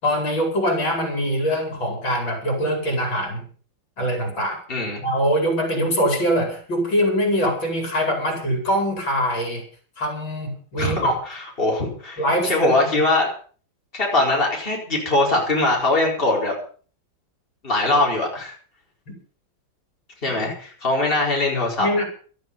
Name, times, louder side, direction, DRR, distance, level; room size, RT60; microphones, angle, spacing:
voice 1, 0.0-3.5 4.0-4.6 5.0-9.6 10.0-11.1 12.2-13.0 21.8-22.1, equal, 70° left, 2 dB, 5.7 m, -23 dB
voice 2, 4.7-5.0 10.8-11.1 11.6-13.3 14.0-16.5 17.6-18.5 20.2-22.1, left 2 dB, 25° left, -2 dB, 4.5 m, -21 dB
16.5 x 13.0 x 5.3 m, 0.42 s
omnidirectional pair, 2.2 m